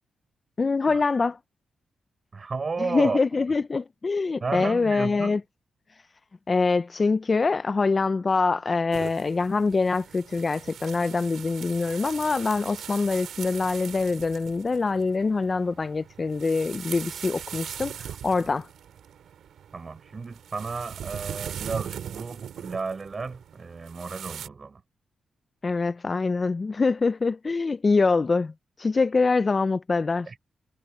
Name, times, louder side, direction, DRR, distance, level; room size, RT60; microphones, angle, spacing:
voice 1, 0.6-1.4 2.9-5.4 5.9-6.0 6.5-18.7 25.6-28.5 28.8-30.3, left 4 dB, 30° left, 0.3 m, -24 dB
voice 2, 2.3-3.2 4.4-5.4 19.7-24.8 30.3-30.4, right 4 dB, 30° right, 6.1 m, -33 dB
sound 1, 8.9-24.5, right 9 dB, 80° right, 3.5 m, -40 dB
wide cardioid pair, 140°, 0 cm